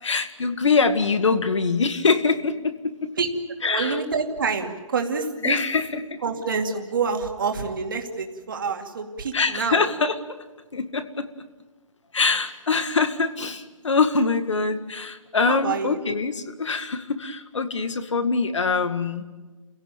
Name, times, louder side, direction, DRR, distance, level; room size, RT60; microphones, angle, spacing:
voice 1, 0.0-3.1 3.6-4.0 5.4-6.2 9.3-10.4 10.7-11.3 12.1-19.2, left 4 dB, 55° left, 10 dB, 2.0 m, -24 dB
voice 2, 3.6-5.6 6.2-9.9 15.5-16.0, right 5 dB, 35° right, 4 dB, 2.4 m, -27 dB
29.5 x 17.0 x 9.1 m, 1.3 s
hypercardioid pair, 175°, 18 cm